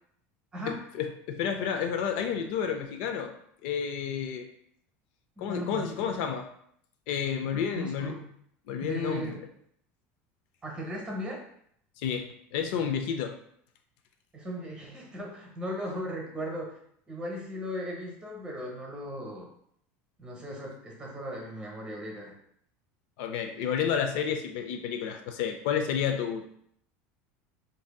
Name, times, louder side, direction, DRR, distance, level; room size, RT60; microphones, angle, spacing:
voice 1, 0.9-3.3 3.6-4.5 5.4-6.5 7.1-8.1 8.7-9.3 12.0-13.4 23.2-26.5, left 7 dB, 60° left, 5 dB, 0.4 m, -30 dB
voice 2, 5.4-6.1 7.5-8.3 8.8-9.4 10.6-11.5 14.3-16.8 17.1-19.5 20.2-22.3, equal, 15° right, 0 dB, 0.8 m, -37 dB
4.7 x 2.6 x 2.3 m, 0.68 s
cardioid pair, 170°, 6 cm